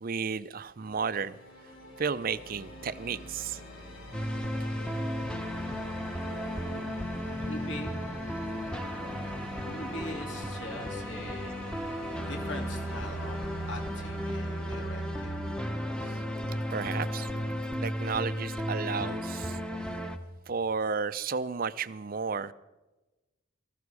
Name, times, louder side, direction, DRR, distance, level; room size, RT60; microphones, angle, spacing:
voice 1, 0.0-1.4 2.0-3.6 16.1-16.2 16.7-19.6 20.5-22.5, right 5 dB, 45° right, 15 dB, 0.5 m, -33 dB
sound 1, 0.8-18.5, left 1 dB, 80° left, 4.6 m, -46 dB
sound 2, 4.1-20.2, equal, 5° left, 0.9 m, -34 dB
voice 2, 7.4-7.9 9.1-9.4 9.6-11.9 12.3-15.4, left 1 dB, 65° left, 2 dB, 2.9 m, -42 dB
18.0 x 14.5 x 4.8 m, 1.1 s
head